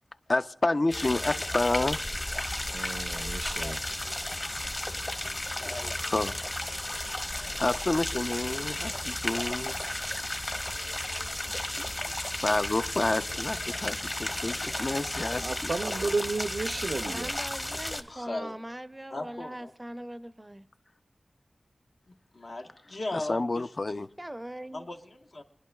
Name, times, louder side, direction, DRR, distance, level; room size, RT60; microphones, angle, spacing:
voice 1, 0.3-2.0 5.9-6.4 7.6-9.8 12.2-15.7 23.1-24.1, left 2 dB, 50° left, 0.4 m, -29 dB
sound 1, 0.9-18.0, left 1 dB, 30° left, 0.9 m, -33 dB
voice 2, 2.7-3.8 15.4-17.3, right 3 dB, 75° right, 0.4 m, -32 dB
voice 3, 3.3-3.8 5.4-6.2 7.3-7.6 18.1-18.5 19.1-19.7 22.1-23.9 24.7-25.4, left 2 dB, 80° left, 1.2 m, -39 dB
voice 4, 17.0-20.7 24.2-24.9, right 1 dB, 20° right, 0.4 m, -41 dB
24.5 x 10.5 x 2.2 m
wide cardioid pair, 70°, 0 cm